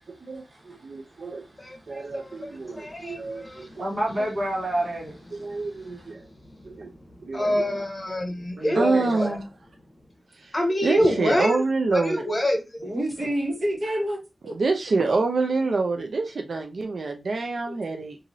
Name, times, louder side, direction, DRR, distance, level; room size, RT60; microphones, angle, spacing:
voice 1, 0.2-1.5 1.9-3.9 5.4-6.2 6.6-6.9 7.2-7.7 8.7-9.5 10.4-10.5 10.8-12.2 14.5-18.2, right 3 dB, 80° right, 0.4 m, -27 dB
voice 2, 1.6-2.5 2.7-3.7 7.3-8.8 9.2-9.3 10.5-11.6 11.9-12.6, equal, 40° left, 1.0 m, -26 dB
voice 3, 2.8-3.1 3.6-5.3 5.8-6.1 8.6-9.3 11.0-11.3 12.8-14.5 17.7-17.8, right 1 dB, 60° right, 1.3 m, -29 dB
2.9 x 2.6 x 2.5 m
cardioid pair, 50°, 0 cm